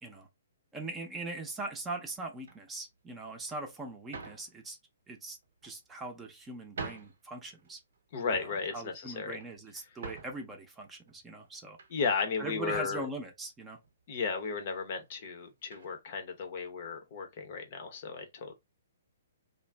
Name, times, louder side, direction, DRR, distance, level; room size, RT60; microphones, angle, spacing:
voice 1, 0.7-4.8 5.1-5.4 5.6-7.8 8.5-11.8 12.4-13.8, right 2 dB, 15° right, 0.6 m, -41 dB
sound 1, 2.4-2.8 3.5-3.6 4.1-4.5 5.4-6.0 6.5-6.6 6.8-7.2 7.6-8.0 8.3-8.6 9.2-10.5 11.1-11.9 12.2-12.4 12.7-13.0 13.8-13.9 14.3-14.4 15.7-15.9, right 4 dB, 65° right, 0.7 m, -45 dB
voice 2, 8.1-9.4 11.9-13.0 14.1-18.5, left 5 dB, 50° left, 0.7 m, -34 dB
2.5 x 2.0 x 3.2 m
hypercardioid pair, 130°, 0 cm